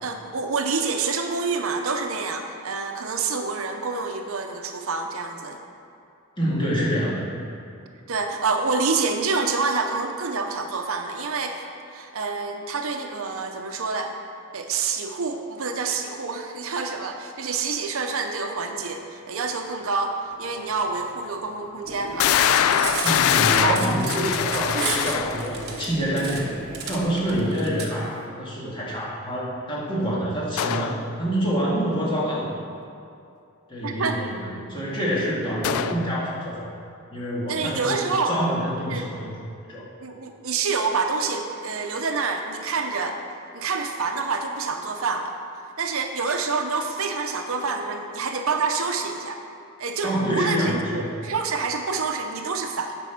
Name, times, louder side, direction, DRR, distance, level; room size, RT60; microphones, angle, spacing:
voice 1, 0.0-5.6 8.1-11.6 11.9-14.1 14.5-22.3 23.5-23.8 24.7-24.9 33.8-34.2 37.5-38.4 38.9-39.1 40.0-43.2 43.5-45.3 45.8-49.4 49.8-53.0, right 4 dB, 70° right, 4 dB, 0.7 m, -27 dB
voice 2, 6.4-7.3 23.0-26.5 26.9-32.5 33.7-36.7 37.1-39.3 39.7-39.9 50.0-51.1, equal, 20° left, -7 dB, 1.9 m, -26 dB
sound 1, 20.6-20.7 21.3-21.4 22.2-25.6 30.6-31.0 35.6-36.1, left 9 dB, 75° left, 0.3 m, -23 dB
sound 2, 21.8-27.5, right 1 dB, 30° right, 1.5 m, -38 dB
Cutlery silverware, 22.4-27.9, right 5 dB, 45° right, 1.0 m, -32 dB
9.3 x 5.4 x 5.8 m, 2.6 s
head